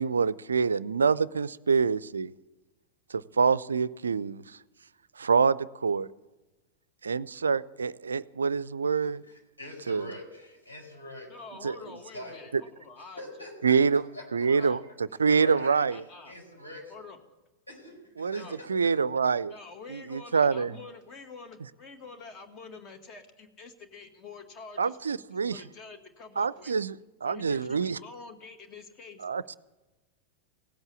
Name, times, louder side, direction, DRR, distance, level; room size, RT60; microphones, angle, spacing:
voice 1, 0.0-2.3 3.1-4.4 5.2-6.1 7.0-9.2 9.9-10.1 11.6-11.7 13.6-14.0 14.3-14.8 15.2-16.0 18.2-18.4 18.7-19.5 19.9-20.7 24.8-25.6 26.4-27.0 27.2-28.0 29.2-29.5, right 5 dB, 75° right, 20 dB, 0.4 m, -26 dB
voice 2, 9.0-11.3 11.6-12.4 13.2-13.8 14.1-14.7 15.2-15.9 16.3-16.9 17.7-18.9, left 1 dB, 85° left, -3 dB, 5.1 m, -44 dB
voice 3, 11.3-13.2 14.4-14.8 15.9-16.3 16.9-17.2 18.3-18.6 19.5-25.1 25.5-26.7 27.2-29.3, left 4 dB, 30° left, 7 dB, 1.8 m, -47 dB
16.5 x 8.0 x 8.3 m, 1.1 s
figure-of-eight pair, 90°, 0 cm